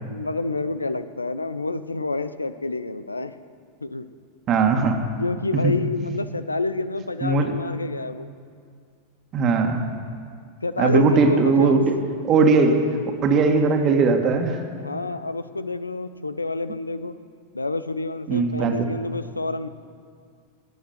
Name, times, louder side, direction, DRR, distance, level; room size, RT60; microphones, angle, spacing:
voice 1, 0.1-3.3 3.8-4.1 5.2-8.3 10.6-11.8 14.8-17.1 17.5-19.7, left 3 dB, 80° left, 13 dB, 0.6 m, -28 dB
voice 2, 4.5-5.0 5.5-5.7 7.2-7.5 9.3-9.9 10.8-11.8 12.3-12.8 13.2-14.6 18.3-18.9, right 4 dB, 30° right, 4 dB, 1.9 m, -19 dB
18.5 x 9.3 x 7.8 m, 2.2 s
figure-of-eight pair, 90°, 0 cm